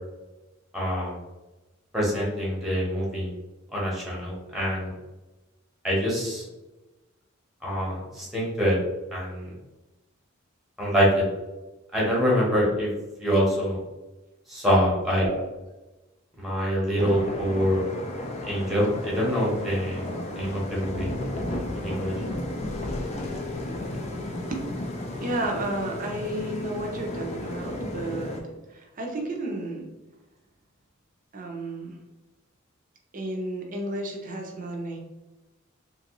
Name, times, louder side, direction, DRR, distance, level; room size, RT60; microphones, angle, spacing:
voice 1, 0.7-1.2 1.9-3.3 3.7-4.9 5.8-6.4 7.6-8.8 9.1-9.5 10.8-11.2 11.9-12.9 13.2-13.8 14.5-15.2 16.4-17.8 18.5-20.0 20.3-21.1 21.7-22.1, equal, ahead, -5 dB, 0.9 m, -25 dB
sound 1, 17.0-28.4, left 1 dB, 30° left, 0.4 m, -33 dB
voice 2, 25.2-28.4 28.7-29.9 31.3-32.0 33.1-35.0, right 1 dB, 40° right, 1 dB, 0.6 m, -32 dB
2.9 x 2.6 x 2.9 m, 1.1 s
head